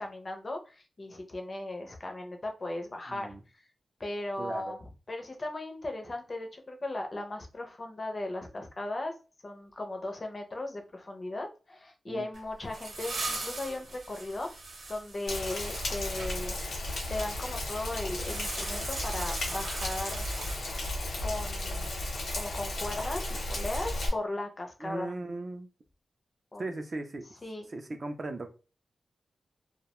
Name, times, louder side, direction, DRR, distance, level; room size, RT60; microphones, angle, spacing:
voice 1, 0.0-3.3 3.5-3.6 4.0-4.8 5.1-9.1 9.4-14.5 14.9-16.8 17.1-20.3 21.2-25.1 26.5-26.7 27.4-27.7, left 2 dB, 30° left, 0.4 m, -37 dB
voice 2, 3.1-3.4 4.4-4.7 12.1-12.3 24.8-25.7 26.6-27.3 27.7-28.5, right 2 dB, 35° right, 0.3 m, -37 dB
sound 1, 12.3-16.3 18.1-21.0, right 2 dB, 80° right, 0.8 m, -40 dB
Rain, 15.3-24.1, left 1 dB, 80° left, 0.7 m, -34 dB
2.2 x 2.1 x 2.9 m
wide cardioid pair, 175°, 0 cm